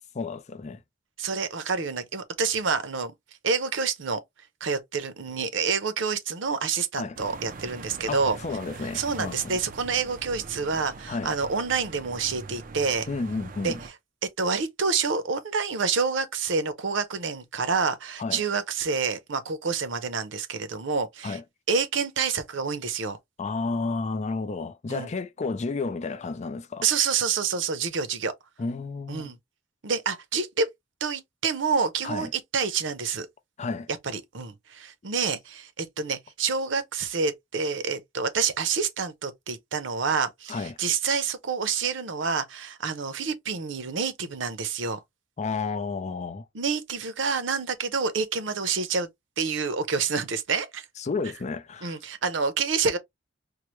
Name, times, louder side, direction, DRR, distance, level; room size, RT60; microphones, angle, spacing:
voice 1, 0.2-0.8 7.0-7.2 8.1-9.6 11.1-11.3 13.1-13.8 18.2-18.4 21.2-21.4 23.4-26.9 28.6-29.3 32.0-32.3 33.6-33.9 40.5-40.7 45.4-46.5 51.0-52.0, left 4 dB, 40° left, 0.4 m, -31 dB
voice 2, 1.2-3.1 3.4-4.2 4.6-8.4 8.9-13.1 13.6-13.7 14.4-21.4 21.7-23.2 24.9-25.1 26.8-28.3 29.1-29.4 29.8-30.7 31.0-33.3 34.0-45.0 46.5-49.1 49.4-50.8 51.8-53.0, right 5 dB, 85° right, 0.7 m, -28 dB
sound 1, 7.2-13.9, right 3 dB, 50° right, 0.5 m, -42 dB
4.6 x 2.0 x 3.0 m
head